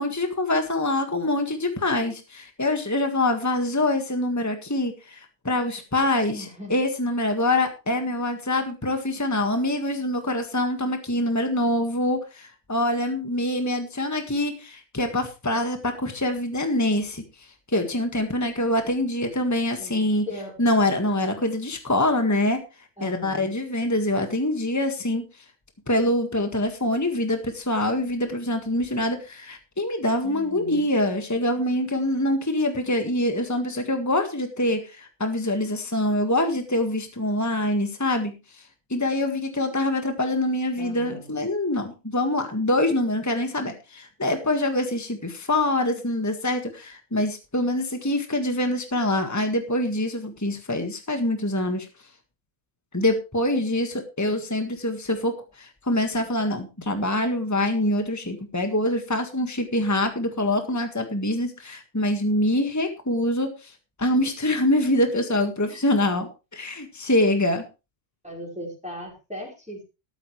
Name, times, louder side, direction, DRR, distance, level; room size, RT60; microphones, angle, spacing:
voice 1, 0.0-17.2 17.7-20.3 20.6-22.6 23.0-25.2 25.9-38.6 38.9-51.9 52.9-63.7 64.0-67.6, left 1 dB, 15° left, 6 dB, 1.7 m, -25 dB
voice 2, 6.3-6.8 19.8-19.9 20.3-20.5 23.0-23.5 30.2-30.9 40.7-41.3 65.7-65.8 68.2-69.8, left 1 dB, 5° right, -2 dB, 5.0 m, -38 dB
13.5 x 13.0 x 3.2 m, 0.28 s
omnidirectional pair, 1.2 m